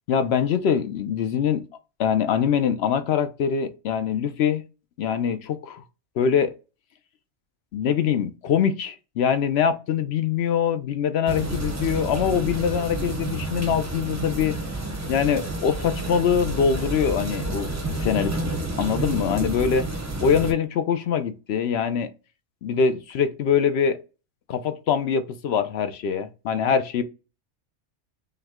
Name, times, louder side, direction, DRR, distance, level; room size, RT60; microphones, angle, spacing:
voice 1, 0.1-1.6 2.0-4.6 5.0-5.8 6.2-6.5 7.7-14.5 15.1-18.4 18.8-19.9 20.2-22.1 22.6-24.0 24.5-27.0, left 7 dB, 65° left, 0.8 m, -23 dB
sound 1, 11.3-20.5, right 2 dB, 15° right, 0.6 m, -30 dB
5.5 x 2.1 x 3.5 m
omnidirectional pair, 1.3 m